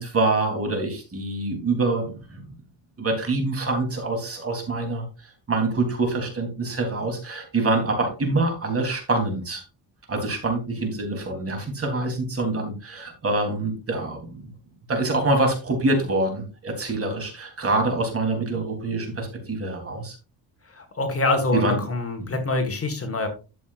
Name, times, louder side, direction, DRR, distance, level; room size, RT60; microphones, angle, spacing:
voice 1, 0.0-2.5 3.0-9.6 10.1-14.5 14.9-20.2 21.5-21.8, right 2 dB, 30° right, 3 dB, 3.3 m, -25 dB
voice 2, 20.7-23.3, left 2 dB, 30° left, 5 dB, 1.6 m, -25 dB
12.0 x 7.4 x 2.5 m, 0.32 s
cardioid pair, 135°, 45 cm